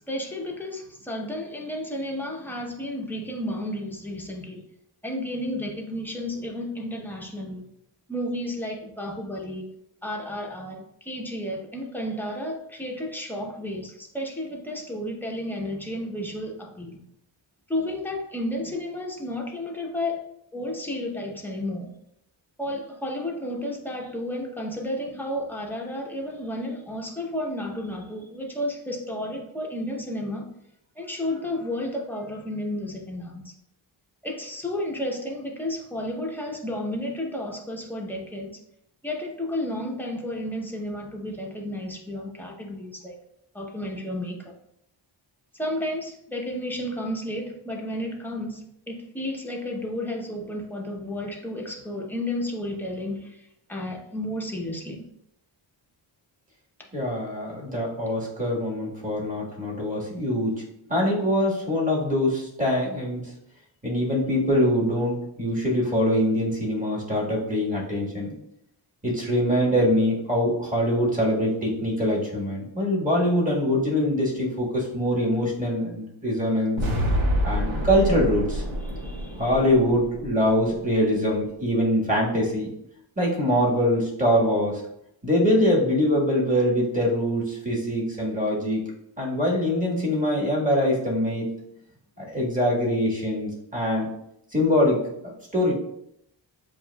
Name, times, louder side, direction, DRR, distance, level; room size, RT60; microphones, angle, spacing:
voice 1, 0.1-4.6 5.0-7.7 8.1-9.7 10.0-17.0 17.7-20.2 20.5-21.9 22.6-30.5 31.0-33.5 34.2-38.6 39.0-43.2 43.5-44.5 45.5-55.0 78.8-79.5, left 1 dB, 5° left, 0 dB, 0.8 m, -32 dB
voice 2, 56.9-60.6 60.9-63.3 63.8-68.3 69.0-76.8 77.4-78.6 79.4-82.7 83.2-84.8 85.2-88.8 89.2-91.5 92.2-94.1 94.5-95.0 95.5-95.7, equal, 15° right, -4 dB, 1.5 m, -23 dB
sound 1, 76.8-80.9, equal, 80° right, 1.1 m, -27 dB
7.5 x 2.5 x 2.2 m, 0.77 s
cardioid pair, 95°, 48 cm